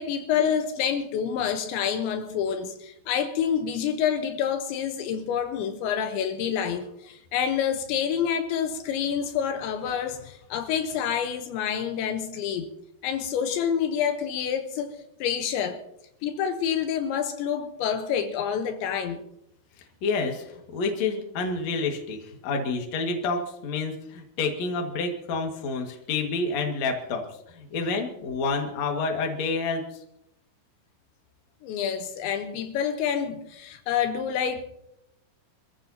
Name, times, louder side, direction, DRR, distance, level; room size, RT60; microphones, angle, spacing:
voice 1, 0.0-12.7 13.0-14.9 15.2-15.8 16.2-19.2 31.6-34.6, left 8 dB, 80° left, 3.2 m, -28 dB
voice 2, 20.0-29.8, left 3 dB, 50° left, 2.3 m, -29 dB
25.5 x 14.5 x 2.8 m
omnidirectional pair, 5.4 m